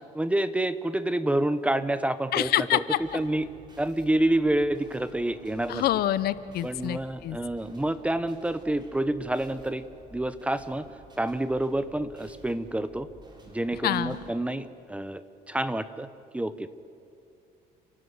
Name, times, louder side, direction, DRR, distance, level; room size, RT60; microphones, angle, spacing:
voice 1, 0.1-2.8 3.1-3.5 3.8-5.8 6.6-9.9 10.1-10.8 11.2-13.1 13.5-16.7, right 1 dB, 5° right, 13 dB, 0.8 m, -28 dB
voice 2, 2.3-3.2 5.7-7.4 13.8-14.2, left 13 dB, 70° left, 16 dB, 0.7 m, -26 dB
sound 1, 3.0-14.3, right 1 dB, 25° right, 3.7 m, -52 dB
29.5 x 11.5 x 8.1 m, 2.5 s
cardioid pair, 120°, 17 cm